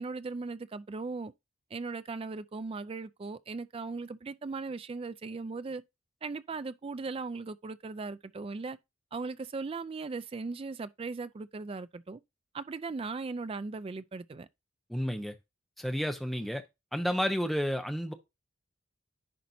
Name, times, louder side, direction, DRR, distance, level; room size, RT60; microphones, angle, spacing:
voice 1, 0.0-1.3 1.7-5.8 6.2-8.8 9.1-12.2 12.5-14.5, right 4 dB, 25° right, 0.3 m, -38 dB
voice 2, 14.9-15.4 15.8-16.6 16.9-18.1, equal, ahead, 0.8 m, -31 dB
10.5 x 4.2 x 2.7 m
head